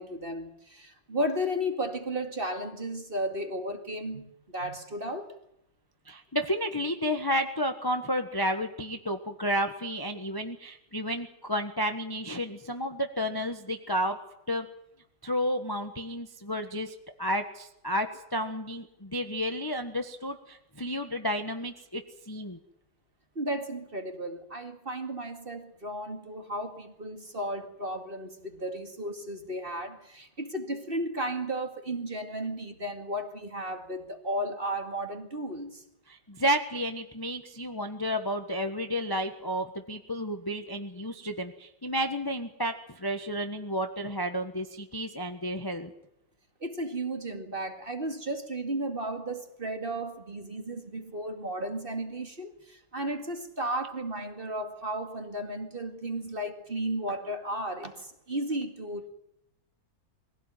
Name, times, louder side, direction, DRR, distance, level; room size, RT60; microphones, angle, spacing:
voice 1, 0.0-5.4 23.4-35.8 46.6-59.1, right 1 dB, 25° right, 2.2 m, -34 dB
voice 2, 6.1-14.2 14.5-14.7 15.2-22.6 36.1-45.9, equal, 15° left, 1.2 m, -31 dB
22.5 x 16.5 x 9.1 m
omnidirectional pair, 2.3 m